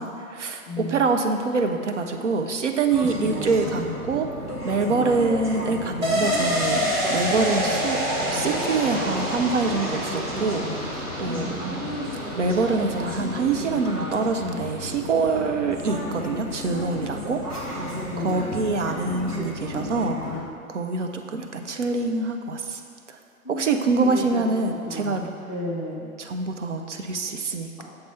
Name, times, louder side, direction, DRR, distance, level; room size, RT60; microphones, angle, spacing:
voice 1, 0.0-4.3 4.6-6.8 7.1-8.0 8.3-11.6 12.4-17.4 17.7-17.9 18.2-22.8 23.1-23.2 23.5-25.3 26.2-27.8, right 4 dB, 55° right, 5 dB, 0.5 m, -25 dB
voice 2, 0.6-1.1 3.3-3.8 4.8-5.1 11.2-11.9 18.1-18.4 23.4-24.5 24.8-26.1, left 1 dB, 20° left, -6 dB, 0.4 m, -33 dB
sound 1, 2.9-20.4, left 1 dB, 90° right, 1.5 m, -33 dB
sound 2, 6.0-15.4 15.7-15.8, equal, 30° right, 1.2 m, -28 dB
6.6 x 4.1 x 4.5 m, 2.3 s
figure-of-eight pair, 125°, 44 cm